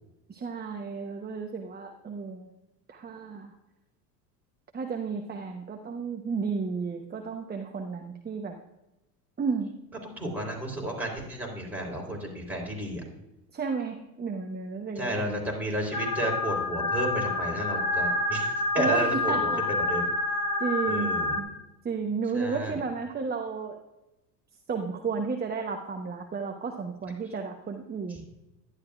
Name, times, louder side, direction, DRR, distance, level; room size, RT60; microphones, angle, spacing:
voice 1, 0.3-2.5 2.9-3.5 4.7-8.6 9.4-9.7 13.5-15.4 18.8-19.6 20.6-21.1 21.4-21.5 21.8-23.8 24.7-28.3, right 5 dB, 20° right, 3 dB, 0.9 m, -32 dB
voice 2, 10.0-13.0 15.0-19.5 19.9-20.0 20.9-21.3 22.3-22.8, right 1 dB, 5° right, -2 dB, 3.8 m, -32 dB
sound 1, 15.9-21.4, left 2 dB, 40° left, 1.4 m, -28 dB
11.5 x 10.5 x 2.4 m, 0.95 s
hypercardioid pair, 80°, 49 cm